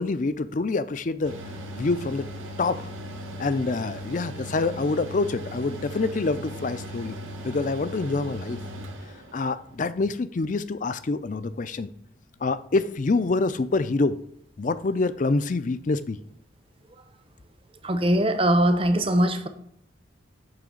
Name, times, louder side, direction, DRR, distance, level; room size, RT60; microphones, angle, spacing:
voice 1, 0.0-1.3 1.7-2.3 2.6-2.9 3.4-7.2 7.4-8.6 9.3-11.9 12.4-14.2 14.6-16.2, left 3 dB, 40° left, 0.4 m, -26 dB
Mechanical fan, 1.2-9.7, equal, 90° right, 1.3 m, -38 dB
voice 2, 17.8-19.5, right 1 dB, 30° right, 0.7 m, -21 dB
8.9 x 3.3 x 6.3 m
head